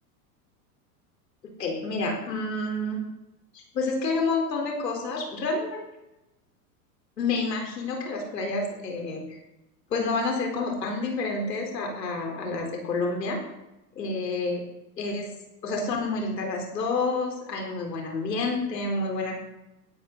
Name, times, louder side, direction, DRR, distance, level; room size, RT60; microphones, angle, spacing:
voice 1, 1.6-3.0 3.5-5.8 7.2-9.2 9.9-13.4 13.9-14.6 15.0-15.3 15.6-19.3, left 3 dB, 90° left, 1 dB, 4.2 m, -29 dB
16.5 x 11.0 x 4.1 m, 0.94 s
hypercardioid pair, 105°, 48 cm